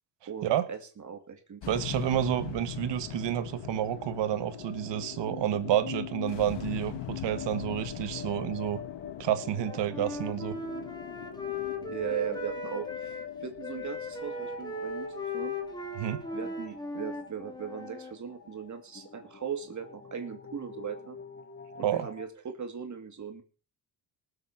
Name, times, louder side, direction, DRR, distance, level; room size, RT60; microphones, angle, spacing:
voice 1, 0.3-1.6 11.9-15.6 16.3-21.2 21.7-23.4, right 7 dB, 40° right, 6 dB, 2.4 m, -38 dB
sound 1, 1.6-18.0, left 12 dB, 90° left, 1.6 m, -41 dB
voice 2, 1.7-8.8 9.2-10.6 16.0-16.2 21.8-22.1, right 11 dB, 80° right, 12 dB, 1.7 m, -29 dB
sound 2, 7.3-22.3, left 6 dB, 25° left, 1.6 m, -46 dB
Wind instrument woodwind instrument, 9.5-13.3 13.6-18.1, left 2 dB, 10° left, 3.0 m, -38 dB
19.0 x 7.9 x 6.0 m, 0.37 s
cardioid pair, 105°, 42 cm